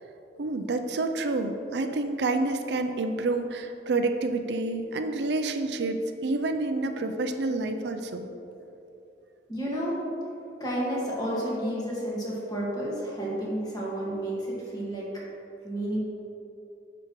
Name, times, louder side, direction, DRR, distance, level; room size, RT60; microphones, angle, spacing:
voice 1, 0.4-8.3, right 2 dB, 70° right, 7 dB, 0.5 m, -28 dB
voice 2, 9.5-10.0 10.6-15.1 15.6-16.0, right 1 dB, 20° left, -5 dB, 1.8 m, -31 dB
10.0 x 6.2 x 3.1 m, 2.9 s
head